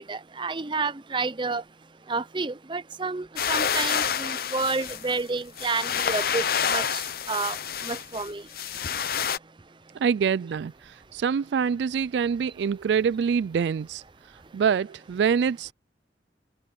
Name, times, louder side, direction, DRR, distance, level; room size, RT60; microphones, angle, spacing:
voice 1, 0.0-1.6 2.1-7.0 7.3-7.6 7.8-8.4, right 4 dB, 25° right, 0.6 m, -30 dB
sound 1, 3.4-9.4, left 7 dB, 55° left, 0.8 m, -28 dB
voice 2, 10.0-14.0 14.5-15.7, right 6 dB, 75° right, 0.3 m, -25 dB
head